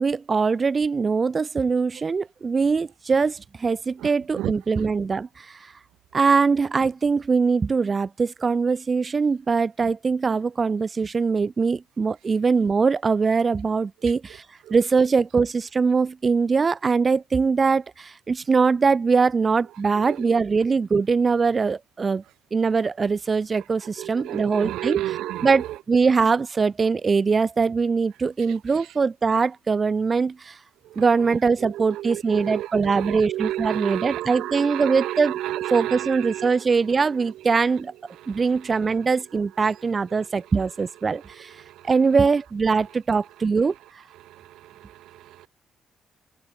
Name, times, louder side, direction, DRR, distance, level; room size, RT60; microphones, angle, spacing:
voice 1, 0.0-5.7 6.1-14.4 14.7-22.2 22.5-25.0 25.4-30.6 30.9-35.4 35.7-37.9 38.3-41.6 41.8-43.7, right 5 dB, 35° right, 1.6 m, -22 dB
voice 2, 4.0-4.5 14.7-14.8 20.0-20.4 24.0-25.7 30.8-31.0 31.6-36.8 38.2-38.4 41.6-41.9 44.2-45.5, right 14 dB, 85° right, 2.7 m, -32 dB
cardioid pair, 90°, 0 cm